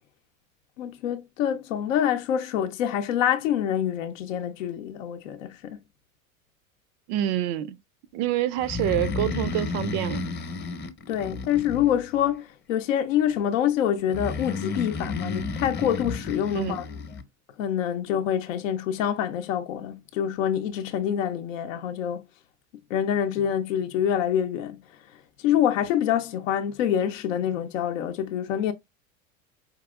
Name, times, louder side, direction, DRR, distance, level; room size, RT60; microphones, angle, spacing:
voice 1, 0.8-5.8 11.1-16.9 17.6-22.2 22.9-24.8 25.4-28.7, left 9 dB, 65° left, 0.7 m, -26 dB
voice 2, 7.1-7.8 8.1-10.3 16.5-16.8, right 12 dB, 40° right, 0.4 m, -27 dB
Breathing, 8.6-12.3 14.1-17.2, left 3 dB, 25° left, 0.9 m, -32 dB
4.7 x 2.9 x 2.3 m
hypercardioid pair, 80°, 41 cm